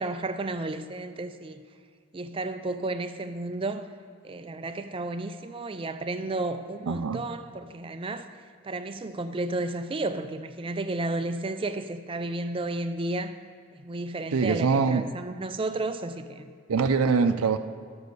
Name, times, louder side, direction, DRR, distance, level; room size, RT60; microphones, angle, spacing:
voice 1, 0.0-1.6 2.1-3.9 4.2-8.3 8.6-13.3 13.7-16.5, right 2 dB, 25° right, 9 dB, 0.4 m, -32 dB
voice 2, 6.9-7.2 14.3-15.1 16.7-17.6, right 5 dB, 80° right, 7 dB, 0.5 m, -23 dB
12.5 x 5.2 x 6.7 m, 2.1 s
head